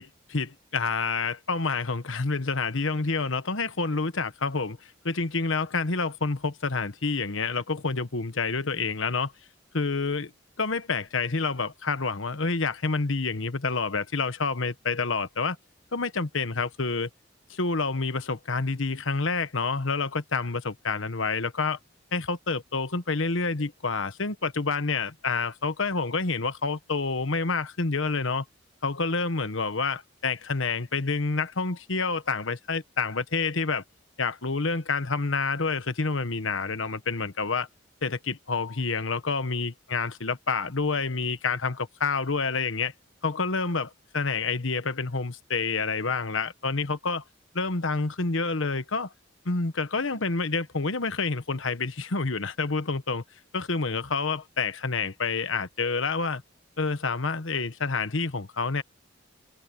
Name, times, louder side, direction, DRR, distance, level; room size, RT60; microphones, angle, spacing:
voice 1, 0.0-9.3 9.7-10.3 10.6-15.6 15.9-17.1 17.5-21.8 22.1-28.4 28.8-33.8 34.2-37.7 38.0-42.9 43.2-47.2 47.5-49.1 49.4-53.2 53.5-56.4 56.8-58.8, left 4 dB, 80° left, 1.3 m, -28 dB
head